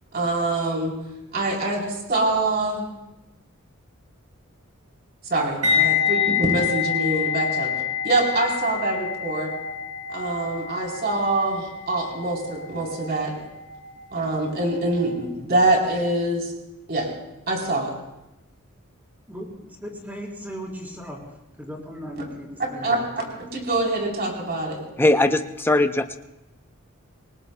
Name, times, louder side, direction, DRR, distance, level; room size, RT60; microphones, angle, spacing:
voice 1, 0.1-0.9 1.3-1.8 2.1-2.8 5.3-7.7 8.0-9.5 10.1-13.3 14.1-16.5 16.9-17.1 17.5-17.9 22.8-23.0 23.4-24.8, right 2 dB, 50° right, -1 dB, 3.6 m, -24 dB
sound 1, 5.6-14.6 14.8-15.1, left 7 dB, 85° right, 4.6 m, -27 dB
voice 2, 19.3-21.2 21.6-23.3, equal, 10° right, -2 dB, 3.5 m, -37 dB
voice 3, 25.0-26.2, left 2 dB, 10° left, 7 dB, 0.6 m, -20 dB
27.0 x 19.5 x 2.2 m, 0.96 s
head